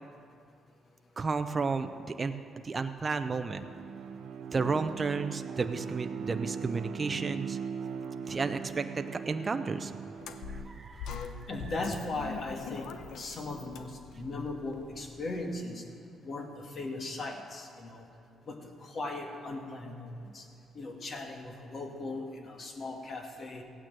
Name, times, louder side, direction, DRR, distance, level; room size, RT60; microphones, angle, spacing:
voice 1, 1.2-1.9 2.2-2.3 2.6-3.6 4.5-7.6 8.3-9.9 10.5-11.3, right 4 dB, 30° right, 7 dB, 0.7 m, -32 dB
Bowed string instrument, 3.2-10.9, right 6 dB, 75° right, 0.8 m, -40 dB
sound 1, 10.2-15.4, left 6 dB, 80° left, 0.8 m, -43 dB
voice 2, 11.5-15.8 16.2-16.5 16.7-18.1 18.5-20.4 20.7-23.6, left 2 dB, 50° left, 2 dB, 2.3 m, -38 dB
16.5 x 9.2 x 7.6 m, 2.4 s
cardioid pair, 90°, 0 cm